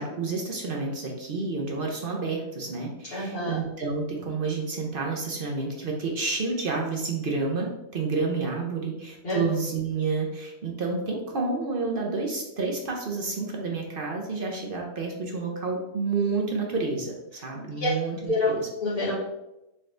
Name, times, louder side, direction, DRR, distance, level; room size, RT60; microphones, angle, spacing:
voice 1, 0.0-18.7, right 4 dB, 50° right, 0 dB, 0.8 m, -29 dB
voice 2, 3.1-3.6 9.2-9.4 17.8-17.9 18.3-18.5 18.8-19.1, left 2 dB, 45° left, -11 dB, 1.7 m, -26 dB
4.2 x 3.7 x 3.3 m, 0.92 s
omnidirectional pair, 1.5 m